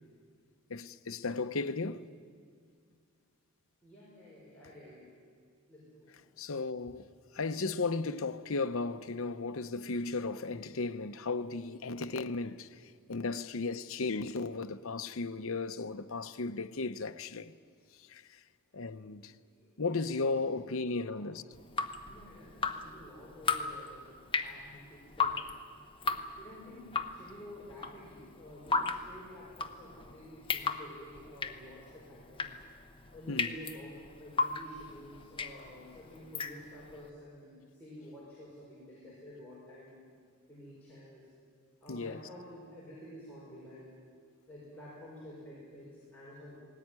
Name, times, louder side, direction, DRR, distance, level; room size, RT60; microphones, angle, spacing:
voice 1, 0.7-2.1 6.4-7.1 7.3-12.7 13.1-17.5 18.1-18.2 18.7-19.3 19.8-21.4 33.3-33.5 41.9-42.2, left 3 dB, 65° left, 0.8 m, -35 dB
voice 2, 3.8-5.1 5.7-6.2 18.8-19.2 19.6-21.2 21.8-24.0 24.4-25.3 26.1-32.5 33.1-40.0 40.5-41.2 41.8-43.9 44.5-46.6, equal, 5° left, 5.7 m, -50 dB
Drip, 21.5-37.0, left 4 dB, 25° left, 0.9 m, -36 dB
19.0 x 18.5 x 9.7 m
head